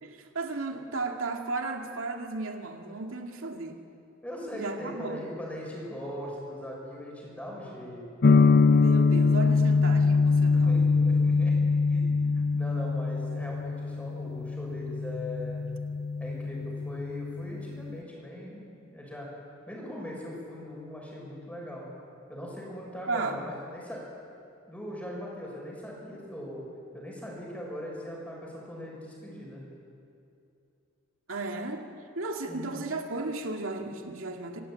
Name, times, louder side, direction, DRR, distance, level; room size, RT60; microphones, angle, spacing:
voice 1, 0.0-3.8 4.5-5.2 8.7-10.8 23.1-23.5 31.3-31.9 32.2-34.6, right 3 dB, 75° right, 3 dB, 2.3 m, -34 dB
voice 2, 4.2-8.1 10.5-11.5 11.9-15.6 16.2-18.7 18.9-19.3 19.7-21.8 22.3-24.0 24.7-26.6 26.9-29.6 32.5-32.8, left 1 dB, 5° left, -3 dB, 6.5 m, -40 dB
sound 1, 8.2-18.0, left 4 dB, 50° left, 0.5 m, -24 dB
25.0 x 16.0 x 9.0 m, 2.6 s
head